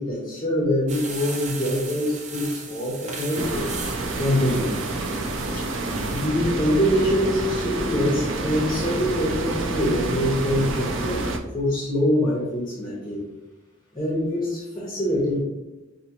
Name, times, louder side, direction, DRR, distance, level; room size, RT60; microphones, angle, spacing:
voice 1, 0.0-3.7 4.1-4.7 5.5-5.7 6.1-11.2 11.5-13.2 13.9-15.4, equal, 25° left, -4 dB, 0.9 m, -24 dB
sound 1, 0.9-6.3, right 4 dB, 40° right, 0.6 m, -37 dB
sound 2, 3.3-11.4, right 2 dB, 85° right, 0.5 m, -28 dB
5.1 x 2.7 x 2.9 m, 1.0 s
head